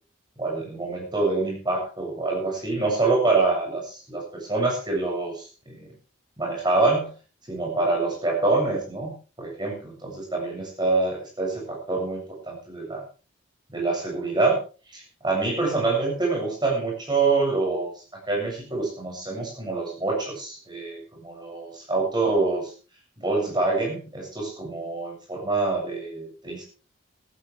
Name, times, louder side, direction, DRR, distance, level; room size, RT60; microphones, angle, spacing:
voice 1, 0.4-5.9 6.4-7.1 7.5-13.0 13.7-14.6 14.9-17.9 18.3-22.7 23.2-26.6, right 3 dB, 20° right, -1 dB, 7.4 m, -26 dB
16.0 x 15.5 x 3.5 m, 0.35 s
head